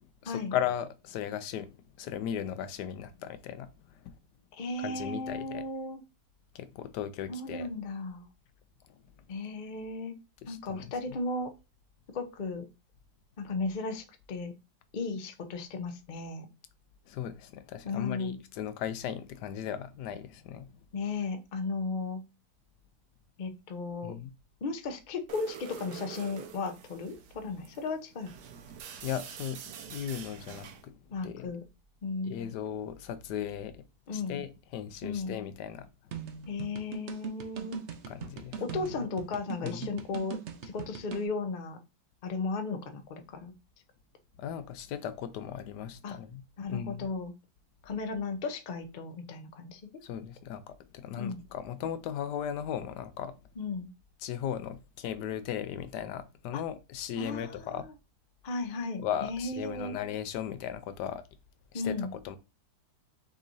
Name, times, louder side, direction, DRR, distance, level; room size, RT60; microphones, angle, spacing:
voice 1, 0.2-3.7 4.0-4.1 4.8-5.6 6.5-7.7 8.9-9.0 10.4-11.2 17.1-20.7 24.0-24.3 29.0-29.6 29.9-31.5 32.2-33.8 34.1-35.9 38.1-38.6 39.6-39.9 44.4-46.4 46.7-47.1 50.0-53.4 54.2-57.9 59.0-61.2 61.7-62.4, left 9 dB, 90° left, 1.2 m, -37 dB
voice 2, 4.6-6.0 7.3-8.3 9.3-10.1 10.5-11.5 12.1-12.7 13.4-14.5 14.9-16.5 17.8-18.4 20.9-22.2 23.4-24.1 24.6-28.3 31.1-31.6 32.0-32.3 34.1-34.4 35.0-35.4 36.5-37.8 38.6-41.8 42.2-43.5 46.0-46.2 46.6-47.3 47.8-49.8 51.2-51.4 53.6-53.9 56.5-56.6 57.2-57.7 58.4-60.0 61.7-62.1, left 3 dB, 45° left, 0.6 m, -35 dB
sound 1, 25.3-30.9, right 8 dB, 80° right, 1.2 m, -46 dB
sound 2, 36.1-41.3, right 7 dB, 60° right, 0.7 m, -40 dB
6.0 x 3.1 x 2.6 m
omnidirectional pair, 1.7 m